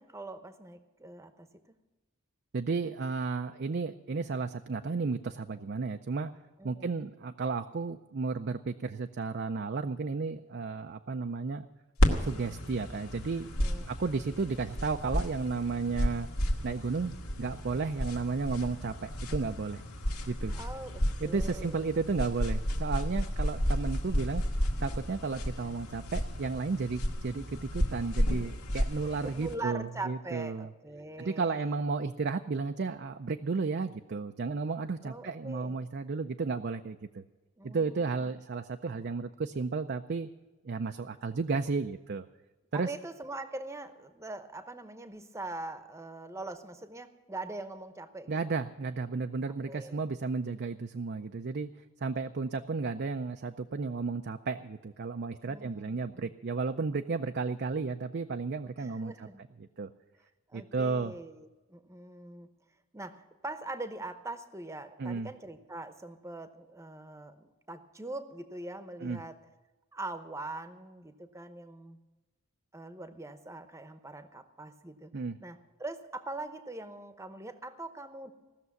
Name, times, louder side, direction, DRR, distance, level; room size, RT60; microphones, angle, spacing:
voice 1, 0.0-1.5 6.6-6.9 13.6-13.9 20.5-21.8 29.0-31.8 35.0-35.8 37.6-38.3 42.7-48.4 49.7-50.0 55.4-56.3 58.8-59.4 60.5-62.5 62.9-69.4 69.9-72.0 72.7-75.1 75.4-78.3, right 2 dB, 15° right, 10 dB, 0.9 m, -42 dB
voice 2, 2.5-6.3 6.6-11.7 12.2-13.5 13.9-16.3 16.6-19.8 20.3-20.6 21.2-24.4 24.8-30.7 31.2-37.2 37.6-40.3 40.6-42.3 42.7-42.9 48.3-51.7 52.0-59.3 59.6-59.9 60.5-61.1 65.0-65.3 69.0-69.2 75.1-75.4, right 4 dB, 50° right, 7 dB, 0.5 m, -33 dB
sound 1, 12.0-29.6, equal, 85° left, 2.0 m, -32 dB
17.0 x 6.8 x 9.4 m, 1.2 s
head